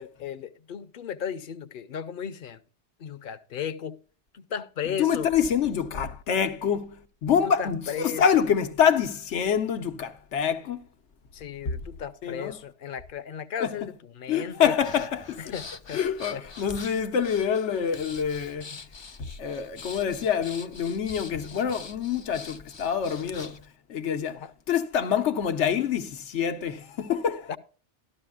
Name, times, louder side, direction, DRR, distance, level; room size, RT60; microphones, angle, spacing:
voice 1, 0.0-2.6 3.0-4.0 4.3-5.3 7.6-8.2 11.3-14.7 15.4-16.0 16.3-16.4 24.3-24.5 27.5-27.6, left 8 dB, 55° left, 0.8 m, -35 dB
voice 2, 5.0-10.8 12.2-12.6 13.6-13.9 14.3-15.4 15.9-18.8 19.2-23.6 23.9-27.5, left 7 dB, 85° left, 1.2 m, -26 dB
Breathing, 14.8-23.7, left 4 dB, 35° left, 0.4 m, -45 dB
13.5 x 13.0 x 2.4 m
omnidirectional pair, 1.2 m